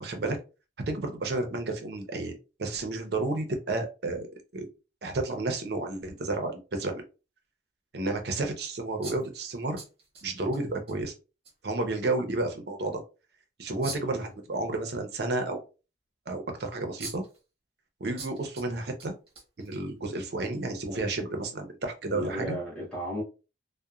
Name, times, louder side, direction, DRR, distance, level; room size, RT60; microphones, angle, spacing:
voice 1, 0.0-0.4 0.9-4.3 4.5-4.7 5.0-7.0 7.9-9.8 10.2-11.1 11.6-13.0 13.6-15.6 16.3-17.2 18.0-19.1 19.6-22.6, right 2 dB, 65° right, 0.6 m, -31 dB
sound 1, 9.0-10.6 10.9-11.0 11.4-11.5 13.8-14.2 16.5-16.6 17.0-17.4 18.2-18.7 19.0-20.0, right 3 dB, 30° right, 0.9 m, -42 dB
voice 2, 13.8-14.2 20.9-21.1 22.1-23.2, equal, 5° left, 0.8 m, -36 dB
2.8 x 2.1 x 2.3 m
head